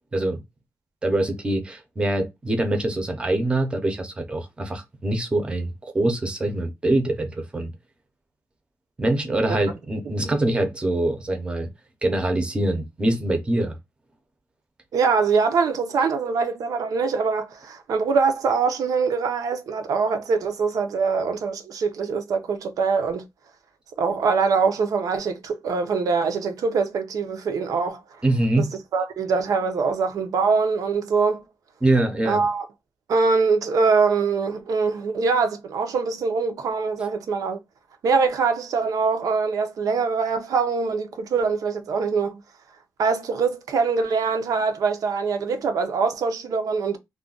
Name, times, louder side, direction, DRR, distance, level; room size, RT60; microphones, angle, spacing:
voice 1, 1.0-7.7 9.0-11.7 12.0-13.8 28.2-28.8 31.8-32.5, right 1 dB, 15° right, 0.6 m, -24 dB
voice 2, 14.9-23.3 24.0-28.2 28.6-28.7 28.9-31.4 32.2-32.7 33.1-37.6 38.0-42.4 43.0-47.0, right 5 dB, 75° right, 0.5 m, -23 dB
2.4 x 2.2 x 3.6 m
wide cardioid pair, 175°, 6 cm